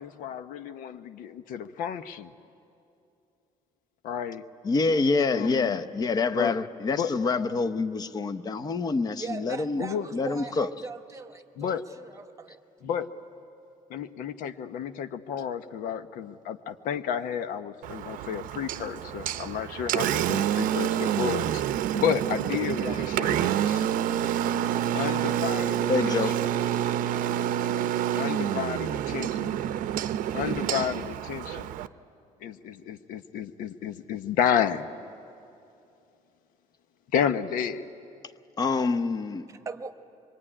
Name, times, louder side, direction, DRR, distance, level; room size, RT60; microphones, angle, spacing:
voice 1, 0.0-2.3 4.0-4.4 5.3-5.8 6.3-6.6 6.9-7.1 9.8-10.1 11.6-11.8 12.8-13.1 13.9-21.6 21.9-23.8 24.9-26.3 28.2-29.6 30.3-31.7 32.4-34.9 37.1-37.9, left 8 dB, 80° left, 9 dB, 1.0 m, -31 dB
voice 2, 4.6-9.8 10.1-10.7 25.9-26.3 38.6-39.5, left 4 dB, 30° left, 11 dB, 0.8 m, -26 dB
voice 3, 9.1-12.6 39.5-39.9, right 4 dB, 20° right, 9 dB, 1.0 m, -40 dB
Engine, 17.8-31.9, right 11 dB, 75° right, 0.7 m, -28 dB
25.5 x 23.0 x 10.0 m, 2.6 s
cardioid pair, 155°, 14 cm